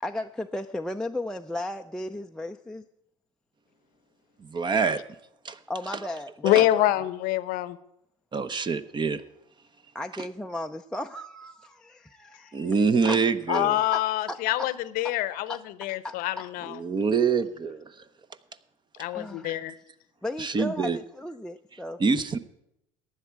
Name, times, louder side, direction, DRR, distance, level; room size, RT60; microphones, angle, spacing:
voice 1, 0.0-2.8 5.7-6.9 9.9-12.7 13.1-13.2 13.5-13.6 13.9-14.0 14.3-14.7 15.5-15.6 16.0-16.4 19.1-19.7 20.2-22.0, left 1 dB, 5° left, 4 dB, 0.5 m, -35 dB
voice 2, 4.4-5.0 5.4-5.6 6.5-6.7 8.3-9.2 10.2-10.3 12.5-13.8 16.7-17.9 19.4-19.7 20.4-21.0 22.0-22.4, right 5 dB, 25° right, 13 dB, 0.9 m, -25 dB
voice 3, 6.4-7.8 13.5-16.8 19.0-19.7, left 14 dB, 60° left, 16 dB, 0.8 m, -26 dB
15.0 x 10.0 x 4.7 m, 0.79 s
hypercardioid pair, 80°, 17 cm